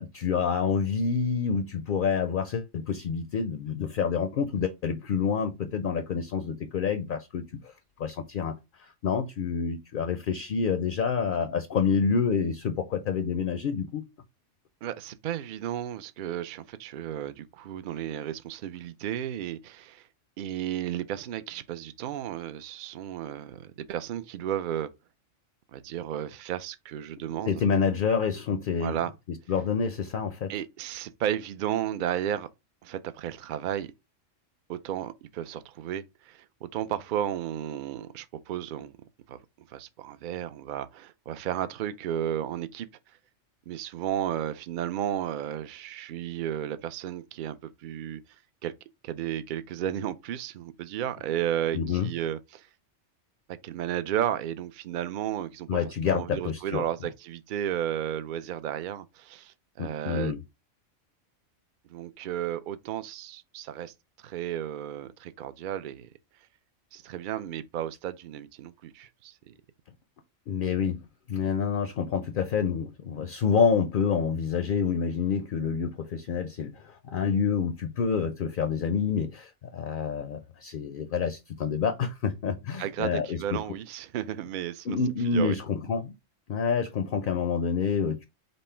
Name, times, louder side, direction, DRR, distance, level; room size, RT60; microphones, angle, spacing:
voice 1, 0.0-7.7 8.0-8.5 8.8-14.0 27.5-29.0 29.5-30.5 51.7-52.1 55.7-56.9 59.8-60.4 70.5-71.0 71.3-83.6 84.9-86.1 86.5-88.3, left 6 dB, 60° left, 0.5 m, -28 dB
voice 2, 14.8-20.1 20.4-24.9 25.7-27.6 28.8-29.1 30.5-32.5 32.8-33.9 34.7-38.9 39.3-39.4 39.7-42.9 43.7-48.2 48.6-48.7 49.0-52.7 53.6-55.7 56.1-60.4 61.9-63.9 64.2-66.1 66.9-69.6 82.8-85.0 85.2-85.6, right 11 dB, 60° right, 0.5 m, -33 dB
5.4 x 2.1 x 4.3 m
omnidirectional pair, 1.3 m